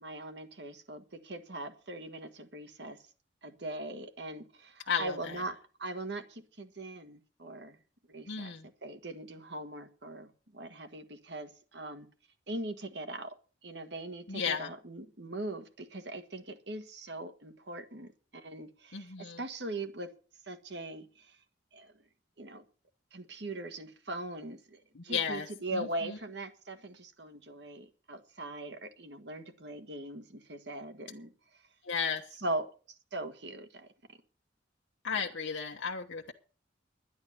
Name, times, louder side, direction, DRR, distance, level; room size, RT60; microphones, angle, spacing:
voice 1, 0.0-3.0 3.4-7.8 8.1-8.5 8.8-12.1 12.5-13.4 13.6-20.1 20.5-21.4 21.7-21.9 22.4-22.6 23.1-31.3 32.4-32.7 33.1-33.9, right 2 dB, 65° right, 1.7 m, -41 dB
voice 2, 4.9-5.3 8.3-8.7 14.3-14.7 18.9-19.4 25.0-25.5 25.7-25.9 31.9-32.2 35.0-36.3, left 6 dB, 85° left, 1.0 m, -34 dB
11.0 x 10.5 x 6.8 m
head